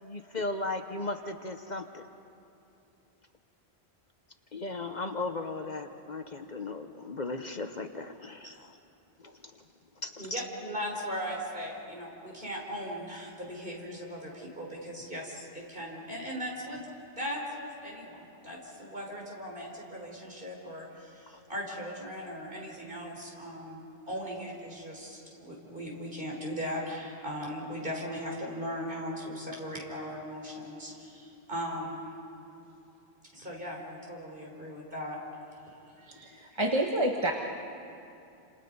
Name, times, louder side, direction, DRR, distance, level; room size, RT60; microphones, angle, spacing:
voice 1, 0.0-2.1 4.5-8.7 9.2-9.4 10.0-10.5, left 2 dB, 45° left, 7 dB, 1.0 m, -36 dB
voice 2, 10.2-16.8 17.1-32.1 33.3-35.2 35.6-35.9, equal, 55° right, -2 dB, 4.9 m, -38 dB
voice 3, 36.0-37.3, right 1 dB, 25° right, 1 dB, 1.4 m, -29 dB
29.5 x 27.0 x 5.5 m, 2.7 s
omnidirectional pair, 1.1 m